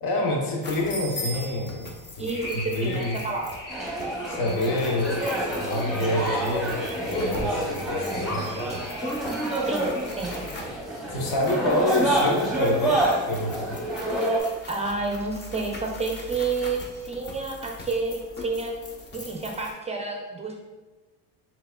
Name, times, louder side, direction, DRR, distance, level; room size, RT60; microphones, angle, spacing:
voice 1, 0.0-3.1 4.3-8.8 11.1-13.8, left 2 dB, 75° left, 0 dB, 1.0 m, -28 dB
sound 1, 0.6-19.7, left 1 dB, 30° left, 0.6 m, -41 dB
voice 2, 2.2-3.5 9.7-10.3 14.7-18.7 19.1-20.6, right 3 dB, 20° right, 1 dB, 0.4 m, -30 dB
sound 2, 2.3-10.6, left 1 dB, 50° left, 1.4 m, -41 dB
sound 3, 3.7-14.4, right 1 dB, ahead, 0.8 m, -27 dB
4.6 x 3.6 x 2.2 m, 1.2 s
cardioid pair, 125°, 38 cm